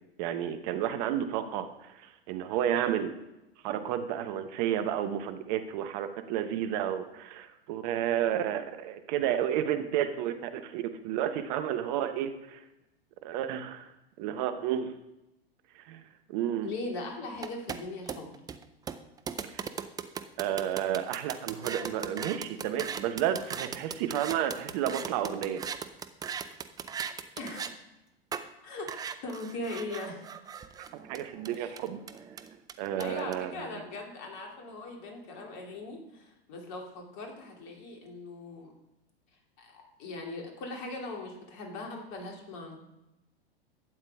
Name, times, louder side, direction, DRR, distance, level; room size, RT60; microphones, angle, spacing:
voice 1, 0.2-1.7 2.3-3.1 3.6-12.6 13.2-13.9 14.2-14.9 15.9-16.0 16.3-16.7 19.5-19.6 20.4-25.6 30.8-32.0 32.8-33.7, right 10 dB, 45° right, 9 dB, 1.0 m, -31 dB
voice 2, 16.6-18.4 27.4-27.8 28.6-28.9 29.2-30.2 31.5-31.8 33.0-38.7 39.6-42.8, left 2 dB, 45° left, 1 dB, 2.7 m, -40 dB
sound 1, 17.4-27.7 28.3-28.4 28.9-33.3, right 7 dB, 10° right, 0.4 m, -38 dB
12.0 x 8.8 x 3.5 m, 0.94 s
figure-of-eight pair, 100°, 31 cm